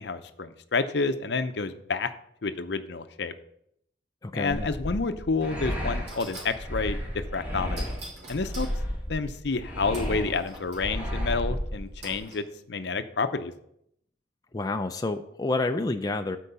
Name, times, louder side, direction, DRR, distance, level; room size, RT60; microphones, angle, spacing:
voice 1, 0.0-2.1 2.4-3.3 4.3-7.9 8.3-8.7 9.1-13.5, left 4 dB, 60° left, 10 dB, 0.6 m, -29 dB
voice 2, 4.2-4.7 14.5-16.4, left 2 dB, 20° left, 6 dB, 0.4 m, -29 dB
sound 1, 4.5-12.2, equal, 10° right, 1.8 m, -32 dB
sound 2, 5.4-5.5 6.1-6.6 7.8-8.8 9.9-10.9 12.0-12.4, right 1 dB, 60° right, 3.0 m, -44 dB
8.6 x 4.6 x 6.8 m, 0.73 s
head